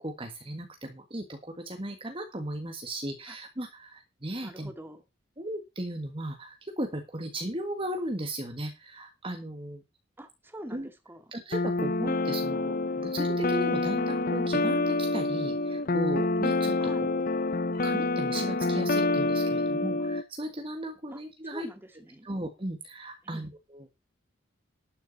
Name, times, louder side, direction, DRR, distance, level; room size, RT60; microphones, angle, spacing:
voice 1, 0.0-4.7 5.4-9.8 10.7-10.9 11.3-17.1 17.5-21.7 22.2-23.9, right 1 dB, 25° right, 5 dB, 1.6 m, -36 dB
voice 2, 4.4-5.0 10.2-11.2 16.8-17.1 21.1-22.3 23.2-23.5, equal, 10° right, 7 dB, 2.0 m, -45 dB
sound 1, 11.5-20.2, left 2 dB, 45° left, 0.8 m, -27 dB
12.0 x 10.5 x 4.1 m, 0.24 s
head